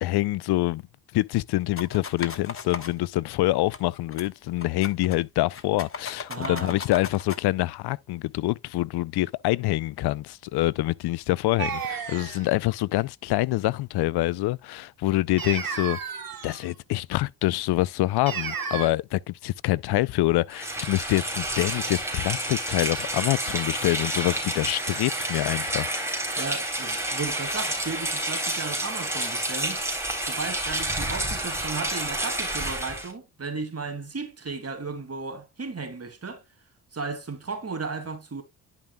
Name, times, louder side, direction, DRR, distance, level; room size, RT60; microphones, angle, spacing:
voice 1, 0.0-0.8 1.1-16.0 16.4-26.2, left 17 dB, 70° left, 0.5 m, -26 dB
sound 1, 1.8-2.9 3.7-3.8 4.1-4.3 4.6-5.2 5.5-7.4, left 5 dB, 30° left, 1.1 m, -37 dB
voice 2, 6.3-6.8 26.4-30.0 30.3-36.4 36.9-38.4, right 4 dB, 35° right, 2.4 m, -35 dB
sound 2, 11.6-12.5 15.4-16.7 18.3-18.9, right 6 dB, 55° right, 3.0 m, -32 dB
Rain, 20.5-33.1, right 1 dB, 5° right, 3.5 m, -29 dB
10.5 x 5.8 x 2.2 m
supercardioid pair, 55°, 41 cm